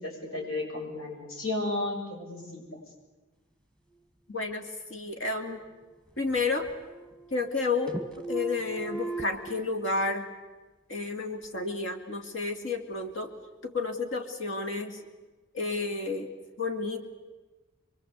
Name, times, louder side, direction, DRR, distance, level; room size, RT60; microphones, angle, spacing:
voice 1, 0.0-2.6, left 2 dB, 85° left, -1 dB, 7.3 m, -33 dB
voice 2, 4.3-5.6 6.2-6.7 7.3-10.3 10.9-13.4 13.6-15.0 15.5-17.0, left 3 dB, 65° left, 6 dB, 2.5 m, -31 dB
sound 1, 5.4-6.4 6.7-7.6 7.9-9.5, right 3 dB, 5° left, 1.4 m, -38 dB
26.5 x 23.0 x 8.3 m, 1.2 s
head